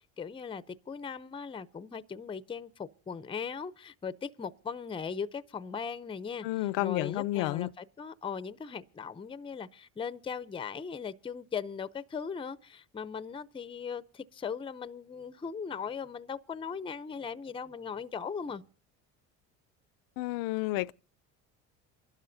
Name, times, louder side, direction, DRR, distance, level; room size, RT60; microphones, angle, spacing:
voice 1, 0.0-18.6, left 6 dB, 15° left, 0.6 m, -39 dB
voice 2, 6.4-7.7 20.2-20.9, left 18 dB, 75° left, 0.6 m, -31 dB
28.0 x 12.0 x 2.7 m
supercardioid pair, 105°, 34 cm